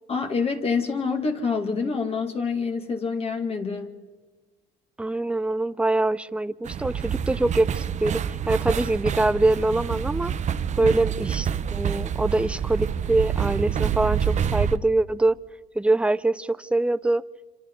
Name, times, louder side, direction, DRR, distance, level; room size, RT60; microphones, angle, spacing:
voice 1, 0.1-3.9 10.8-11.0, left 5 dB, 35° left, 4 dB, 2.3 m, -27 dB
voice 2, 5.0-10.3 10.7-15.4 15.7-17.2, right 2 dB, 5° right, 15 dB, 0.6 m, -24 dB
sound 1, 6.7-14.8, right 8 dB, 45° right, 0.9 m, -27 dB
27.0 x 26.5 x 3.9 m, 1.3 s
cardioid pair, 110°, 17 cm